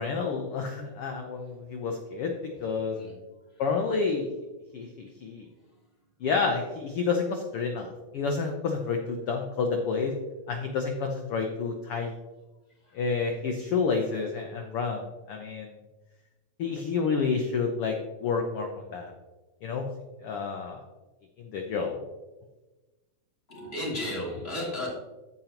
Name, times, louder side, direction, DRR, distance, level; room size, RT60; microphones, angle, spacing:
voice 1, 0.0-2.3 2.6-3.0 3.6-4.3 4.7-5.5 6.2-10.1 10.5-12.1 12.9-15.7 16.6-19.1 19.6-19.9 20.2-20.8 21.4-22.0, left 5 dB, 75° left, 2 dB, 1.3 m, -29 dB
voice 2, 2.9-3.6 12.8-13.0 23.5-24.9, left 1 dB, 20° left, -6 dB, 2.8 m, -35 dB
15.5 x 5.2 x 2.9 m, 1.1 s
omnidirectional pair, 3.6 m